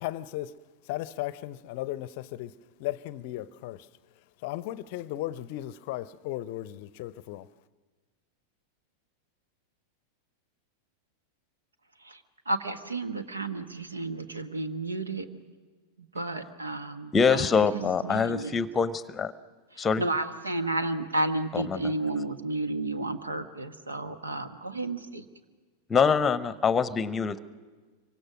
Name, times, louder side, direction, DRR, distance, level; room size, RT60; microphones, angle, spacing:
voice 1, 0.0-0.6 0.8-2.5 2.8-3.9 4.4-7.5, left 15 dB, 50° left, 0.6 m, -36 dB
voice 2, 12.5-15.3 16.0-18.6 19.7-25.2, right 2 dB, 75° right, 1.2 m, -32 dB
voice 3, 17.1-19.3 19.8-20.0 21.5-21.8 25.9-27.4, left 6 dB, 15° left, 0.9 m, -24 dB
26.0 x 24.5 x 6.3 m
figure-of-eight pair, 90°, 0 cm